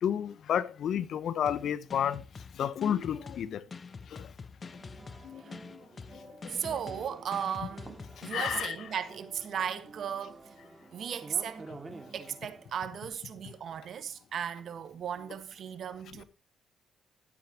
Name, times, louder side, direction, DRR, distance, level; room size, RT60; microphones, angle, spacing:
voice 1, 0.0-2.2 2.5-3.6 4.1-4.3 5.2-5.8 6.1-6.6 8.3-8.8 11.7-11.8, left 9 dB, 65° left, 0.9 m, -32 dB
sound 1, 1.5-8.7, left 5 dB, 35° left, 0.7 m, -46 dB
sound 2, 4.6-12.7, right 3 dB, 25° right, 2.2 m, -50 dB
voice 2, 6.5-8.0 8.2-10.4 10.9-11.6 12.1-16.2, right 8 dB, 60° right, 1.5 m, -36 dB
12.0 x 9.1 x 2.9 m
cardioid pair, 90°, 0 cm